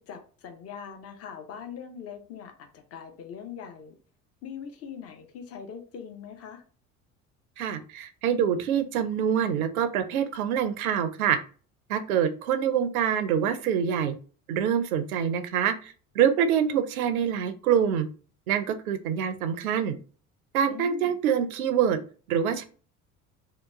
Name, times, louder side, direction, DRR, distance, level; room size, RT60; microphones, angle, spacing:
voice 1, 0.0-4.0 4.4-6.6 20.7-21.1, left 7 dB, 35° left, 5 dB, 0.7 m, -41 dB
voice 2, 7.6-11.4 11.9-14.2 14.5-18.1 18.5-20.0 20.5-22.0 22.3-22.6, right 8 dB, 75° right, 10 dB, 0.5 m, -25 dB
2.9 x 2.2 x 3.4 m, 0.39 s
figure-of-eight pair, 55°, 43 cm